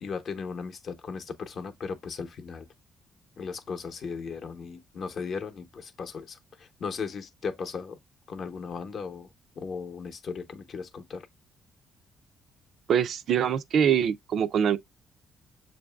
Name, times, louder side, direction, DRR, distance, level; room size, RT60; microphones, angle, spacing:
voice 1, 0.0-2.6 3.4-8.0 8.3-9.3 9.6-11.3, left 5 dB, 55° left, 0.7 m, -37 dB
voice 2, 12.9-14.8, right 8 dB, 70° right, 0.4 m, -24 dB
6.8 x 2.6 x 2.2 m
cardioid pair, 90°, 0 cm